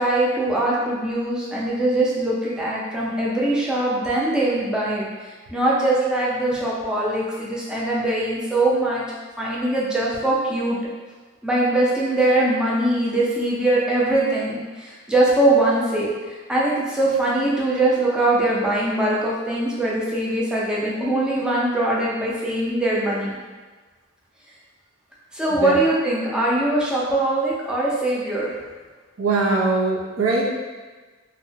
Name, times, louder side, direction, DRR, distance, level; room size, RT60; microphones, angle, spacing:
voice 1, 0.0-5.1 5.5-9.0 9.4-10.8 11.4-23.4 25.3-28.5, right 1 dB, 5° right, -7 dB, 0.4 m, -22 dB
voice 2, 29.2-30.6, right 3 dB, 90° right, -3 dB, 0.5 m, -22 dB
2.8 x 2.1 x 2.6 m, 1.4 s
head